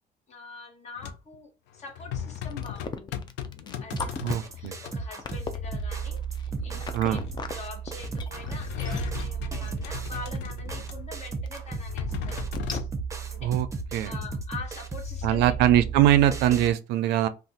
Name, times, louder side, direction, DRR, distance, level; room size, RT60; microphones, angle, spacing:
voice 1, 0.3-3.1 3.8-7.2 7.5-12.9 13.3-13.5 14.0-15.6 17.0-17.3, left 4 dB, 40° left, 1.0 m, -44 dB
sound 1, 1.0-1.3 1.7-4.9 5.2-5.6 6.7-7.7 8.0-11.2 11.7-12.9, left 9 dB, 90° left, 0.5 m, -38 dB
sound 2, 2.5-7.5 7.9-9.7 10.3-10.4 10.7-10.8 11.1-11.2 11.5-11.6 12.1-12.2 12.5-12.8, left 5 dB, 25° left, 0.4 m, -38 dB
sound 3, 3.9-16.7, right 4 dB, 20° right, 0.6 m, -34 dB
voice 2, 4.2-4.7 6.9-7.2 13.4-13.7 13.9-14.1 15.2-17.3, right 12 dB, 85° right, 0.4 m, -22 dB
2.4 x 2.3 x 3.9 m
cardioid pair, 110°, 17 cm